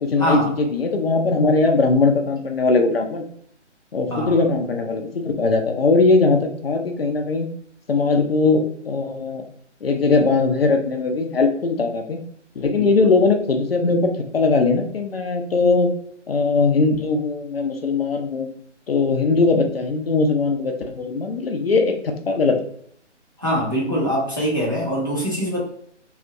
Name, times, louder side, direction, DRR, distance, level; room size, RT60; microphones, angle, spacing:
voice 1, 0.0-3.3 3.9-7.5 7.9-9.4 9.8-12.2 12.6-15.9 16.3-18.5 18.9-22.6, left 3 dB, 55° left, 3 dB, 0.5 m, -20 dB
voice 2, 23.4-25.6, equal, 20° right, -6 dB, 0.4 m, -23 dB
2.7 x 2.1 x 2.4 m, 0.65 s
figure-of-eight pair, 140°, 36 cm